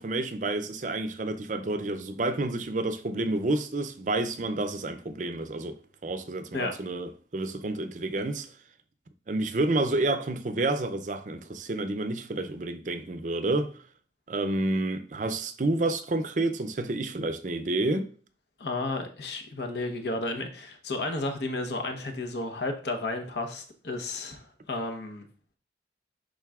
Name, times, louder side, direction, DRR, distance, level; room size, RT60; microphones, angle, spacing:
voice 1, 0.0-5.8 6.0-8.5 9.3-13.7 14.3-18.1, right 2 dB, 45° right, 0.5 m, -29 dB
voice 2, 18.6-25.2, left 2 dB, 70° left, 0.9 m, -32 dB
10.5 x 3.8 x 2.4 m
head